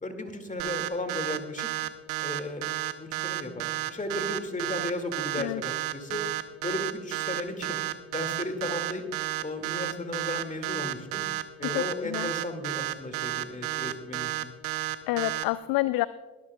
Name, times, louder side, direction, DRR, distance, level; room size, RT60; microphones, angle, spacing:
voice 1, 0.0-1.7 2.2-2.7 3.0-6.2 6.6-7.8 8.1-9.1 9.4-11.2 11.6-14.5, left 1 dB, 15° left, 7 dB, 2.1 m, -35 dB
sound 1, 0.6-15.4, right 17 dB, 65° right, 0.9 m, -31 dB
voice 2, 11.6-12.3 15.1-16.1, left 18 dB, 50° left, 17 dB, 0.5 m, -28 dB
22.0 x 12.5 x 2.3 m, 1.2 s
figure-of-eight pair, 45°, 49 cm